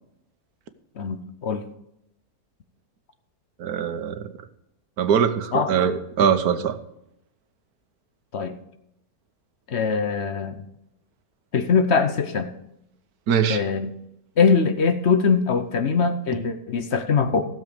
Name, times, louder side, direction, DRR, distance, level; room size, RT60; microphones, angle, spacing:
voice 1, 1.0-1.6 5.5-5.7 8.3-8.5 9.7-10.6 11.5-12.5 13.5-13.9 14.4-17.4, left 5 dB, 55° left, 9 dB, 1.0 m, -22 dB
voice 2, 3.6-4.3 5.0-6.8 13.3-13.6, right 7 dB, 85° right, 10 dB, 1.4 m, -22 dB
15.5 x 7.3 x 5.0 m, 0.82 s
omnidirectional pair, 1.6 m